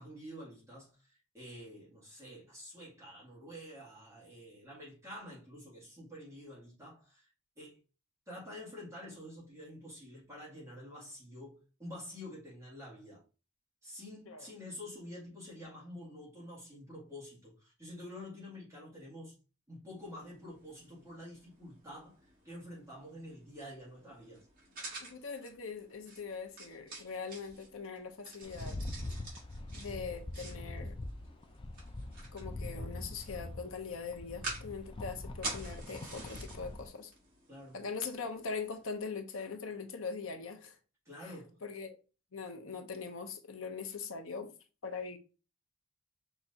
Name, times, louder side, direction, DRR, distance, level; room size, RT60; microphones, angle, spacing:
voice 1, 0.0-7.3 7.6-7.8 8.3-13.2 13.8-19.3 19.7-22.2 22.4-24.5 37.5-37.8 41.0-41.6, left 1 dB, 15° right, 1.9 m, -48 dB
sound 1, 20.0-39.0, right 2 dB, 40° right, 2.1 m, -49 dB
voice 2, 25.0-28.8 29.7-31.0 32.3-37.1 37.7-40.8 41.2-41.3 41.6-42.0 42.3-44.5 44.8-45.2, left 5 dB, 65° left, 0.8 m, -41 dB
Rattle, 28.4-36.9, left 2 dB, 25° left, 0.4 m, -43 dB
5.8 x 3.0 x 2.7 m
head